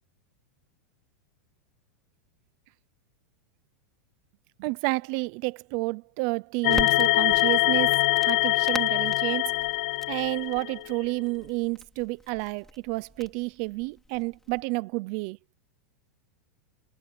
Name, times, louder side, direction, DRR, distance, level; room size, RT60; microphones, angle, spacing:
voice 1, 4.6-9.5 10.1-15.4, right 25 dB, 35° right, 0.5 m, -30 dB
sound 1, 6.6-10.9, left 18 dB, 45° left, 0.6 m, -24 dB
Crackle, 6.7-14.6, left 2 dB, 5° left, 2.9 m, -44 dB
supercardioid pair, 180°, 8 cm